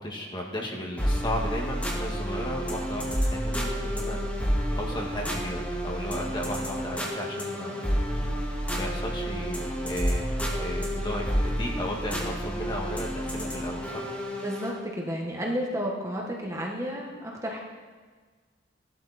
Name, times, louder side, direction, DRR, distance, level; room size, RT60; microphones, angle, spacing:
voice 1, 0.0-4.2 4.8-7.9 8.7-14.0, left 1 dB, 25° left, -1 dB, 2.1 m, -35 dB
sound 1, 1.0-14.8, equal, 10° left, 2.1 m, -30 dB
voice 2, 14.4-17.6, equal, 15° right, -1 dB, 1.6 m, -32 dB
17.0 x 11.5 x 4.4 m, 1.5 s
head